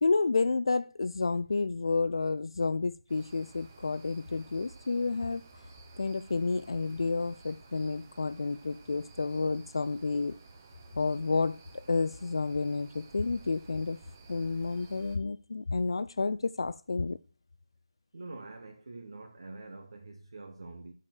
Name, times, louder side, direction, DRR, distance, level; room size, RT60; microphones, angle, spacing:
voice 1, 0.0-5.4 6.0-10.4 11.0-14.0 14.3-17.2, left 3 dB, 60° left, 0.4 m, -30 dB
sound 1, 3.1-15.2, right 3 dB, 20° right, 0.8 m, -54 dB
voice 2, 18.1-20.9, right 3 dB, 55° right, 1.2 m, -45 dB
8.7 x 4.9 x 7.4 m
figure-of-eight pair, 175°, 3 cm